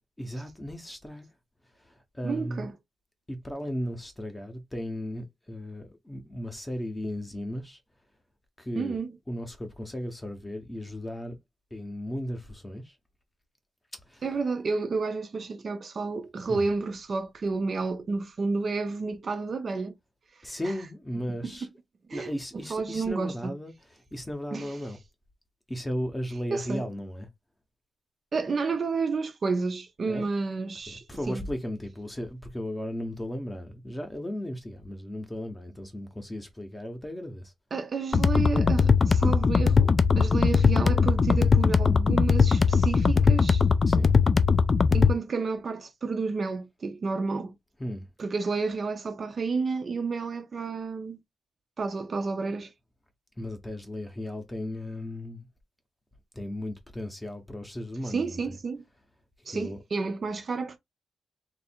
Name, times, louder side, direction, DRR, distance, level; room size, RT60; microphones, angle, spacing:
voice 1, 0.2-1.3 1.9-2.7 3.3-7.8 8.6-9.0 9.3-11.4 11.7-12.9 14.1-14.2 16.5-16.7 20.4-21.7 22.1-23.7 24.1-25.0 25.7-27.3 30.1-30.3 30.9-37.5 41.4-41.5 43.9-44.1 47.8-48.0 53.4-55.5 56.3-58.4 59.5-59.8, equal, 10° left, 0.8 m, -36 dB
voice 2, 2.2-2.7 8.8-9.2 14.2-20.0 20.4-20.6 21.4-21.7 22.1-23.5 24.5-24.7 26.5-26.9 28.3-31.4 37.7-43.6 44.9-47.5 48.2-51.2 51.8-52.7 58.0-58.8 59.5-60.8, right 4 dB, 35° right, 0.5 m, -31 dB
sound 1, 38.1-45.1, left 5 dB, 30° left, 0.4 m, -20 dB
3.2 x 2.4 x 4.3 m
wide cardioid pair, 180°, 0 cm